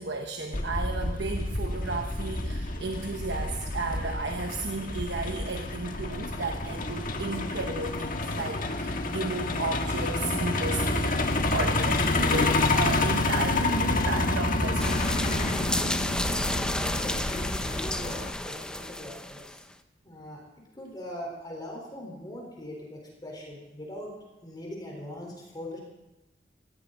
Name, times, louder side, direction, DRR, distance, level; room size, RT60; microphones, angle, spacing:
voice 1, 0.0-15.0, right 3 dB, 75° right, 4 dB, 1.1 m, -34 dB
Truck, 0.5-18.3, left 2 dB, 50° left, 1.5 m, -28 dB
sound 1, 14.8-19.6, left 1 dB, 5° left, 0.7 m, -31 dB
voice 2, 16.7-19.6 20.0-20.4 20.7-24.1 24.4-25.8, left 1 dB, 25° left, -2 dB, 4.1 m, -41 dB
18.0 x 15.5 x 3.9 m, 1.0 s
head